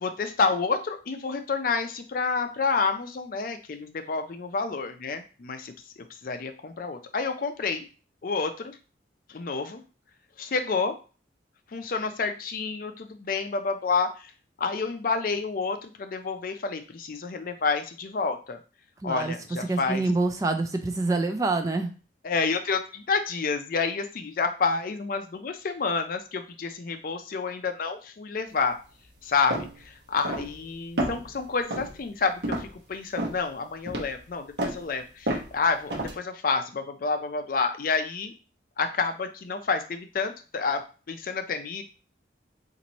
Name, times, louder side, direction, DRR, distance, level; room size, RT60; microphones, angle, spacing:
voice 1, 0.0-7.9 8.2-8.8 9.3-9.8 10.4-11.0 11.7-14.3 14.6-18.6 19.0-20.1 22.2-28.8 29.2-38.3 38.8-40.8 41.1-41.8, left 4 dB, 50° left, 7 dB, 0.4 m, -29 dB
voice 2, 19.0-19.3 19.7-21.9, right 3 dB, 20° right, 7 dB, 0.3 m, -26 dB
sound 1, 29.5-29.7 30.2-30.6 31.0-31.3 31.7-31.9 32.4-32.7 33.2-33.4 33.9-34.1 34.6-34.8 35.3-35.5 35.9-36.1, right 1 dB, 75° right, 0.9 m, -30 dB
2.9 x 2.6 x 4.0 m, 0.35 s
head